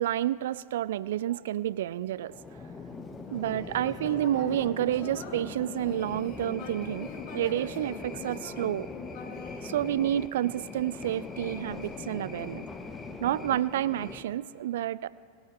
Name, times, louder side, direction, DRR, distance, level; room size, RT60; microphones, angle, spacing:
voice 1, 0.0-2.3 3.3-8.9 9.6-12.7 13.2-15.1, right 12 dB, 55° right, 20 dB, 0.3 m, -29 dB
sound 1, 2.2-14.2, left 3 dB, 15° left, 0.9 m, -41 dB
Human voice, 3.2-10.6 11.2-12.6, left 5 dB, 45° left, 2.1 m, -45 dB
21.0 x 11.0 x 3.8 m, 2.6 s
figure-of-eight pair, 90°, 0 cm